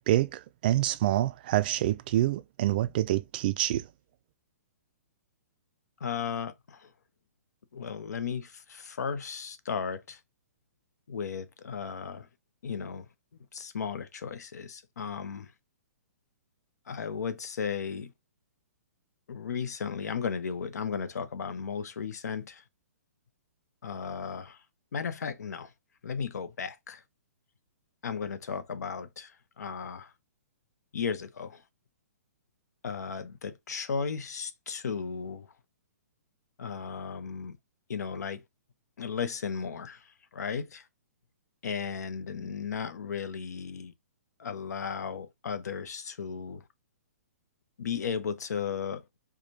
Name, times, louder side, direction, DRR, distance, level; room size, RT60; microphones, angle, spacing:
voice 1, 0.1-3.9, right 14 dB, 35° right, 0.3 m, -27 dB
voice 2, 6.0-6.8 7.7-10.2 11.1-12.3 12.6-13.1 13.5-15.5 16.9-18.1 19.3-22.6 23.8-24.6 24.9-25.7 26.0-27.0 28.0-29.3 29.6-30.1 30.9-31.6 32.8-35.5 36.6-37.5 37.9-38.4 39.0-40.0 40.3-40.8 41.6-43.9 44.4-46.6 47.8-49.0, left 6 dB, 80° left, 0.7 m, -35 dB
4.8 x 2.2 x 2.7 m
hypercardioid pair, 155°, 9 cm